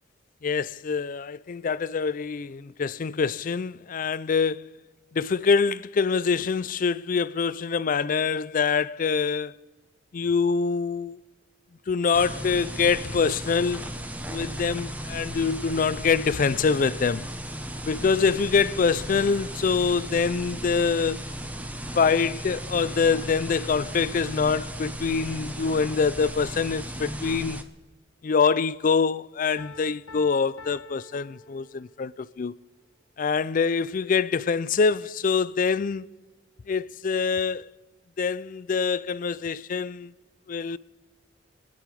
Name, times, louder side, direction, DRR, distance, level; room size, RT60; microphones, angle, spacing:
voice 1, 0.4-4.7 5.1-9.5 10.1-11.2 11.9-13.9 14.3-17.3 17.9-21.2 21.9-27.6 28.2-32.5 33.2-36.1 36.7-37.7 38.2-40.1 40.5-40.8, left 5 dB, 40° left, 0.4 m, -25 dB
sound 1, 12.1-27.6, equal, 5° right, 0.7 m, -36 dB
sound 2, 12.4-20.7, right 1 dB, 25° right, 1.4 m, -53 dB
Piano, 29.6-32.1, left 3 dB, 75° left, 1.4 m, -47 dB
26.0 x 10.0 x 4.7 m
head